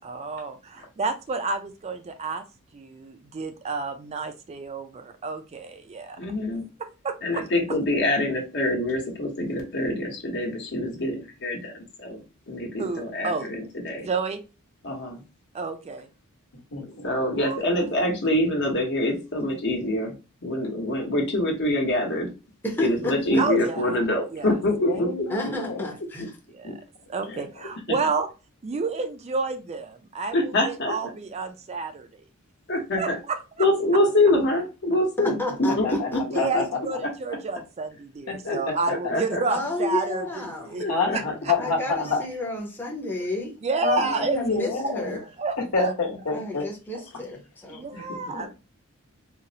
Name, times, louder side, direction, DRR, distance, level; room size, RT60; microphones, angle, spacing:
voice 1, 0.0-2.4 2.7-6.2 6.8-7.4 12.8-13.5 14.0-14.4 15.5-16.1 17.4-17.8 23.4-24.0 24.3-24.6 26.5-26.8 27.1-28.3 28.6-32.2 33.0-33.7 36.3-40.9 41.1-41.2 43.6-44.4 44.8-45.9 46.9-47.0 47.7-48.5, right 4 dB, 30° right, 8 dB, 0.3 m, -30 dB
voice 2, 6.2-6.6 7.2-12.2 12.5-14.1 14.8-15.2 17.0-20.2 20.4-22.3 22.8-25.1 25.4-25.5 26.6-26.8 30.3-30.9 32.7-33.2 33.6-35.9 36.3-36.6 38.4-38.6 38.9-39.4 40.8-41.2 44.0-44.1 48.1-48.3, left 1 dB, 55° left, 1 dB, 1.0 m, -25 dB
voice 3, 16.7-17.1 24.9-25.8 35.8-36.1 36.4-36.6 38.3-38.8 40.9-42.2 43.8-45.2 45.7-46.6 48.0-48.1 48.3-48.5, left 4 dB, 85° left, 0 dB, 1.1 m, -27 dB
voice 4, 22.6-23.4 25.3-26.4 35.2-36.2 39.5-40.8 41.6-43.6 44.0-45.2 46.3-47.9, left 2 dB, 10° left, 0 dB, 0.6 m, -31 dB
3.9 x 2.0 x 2.7 m, 0.30 s
head